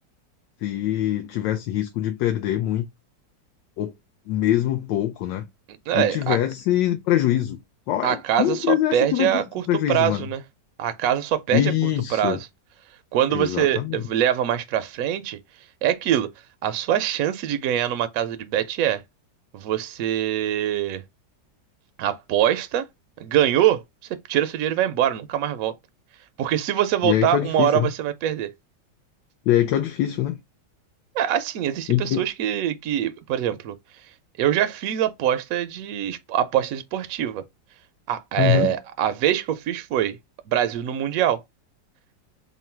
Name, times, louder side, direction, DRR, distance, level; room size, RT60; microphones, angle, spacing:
voice 1, 0.6-2.9 3.8-3.9 4.3-5.4 5.9-7.6 7.9-10.2 11.5-12.4 13.3-14.0 27.0-27.9 29.5-30.4 31.9-32.3 38.4-38.7, left 12 dB, 85° left, 1.3 m, -23 dB
voice 2, 5.9-6.4 8.0-10.4 10.8-12.5 13.1-15.4 15.8-16.3 16.6-19.0 19.5-21.0 22.0-22.8 23.2-23.8 24.3-25.7 26.4-28.5 31.1-33.7 34.4-37.4 38.1-40.2 40.5-41.4, right 11 dB, 70° right, 0.8 m, -23 dB
3.7 x 2.1 x 4.3 m
omnidirectional pair, 1.9 m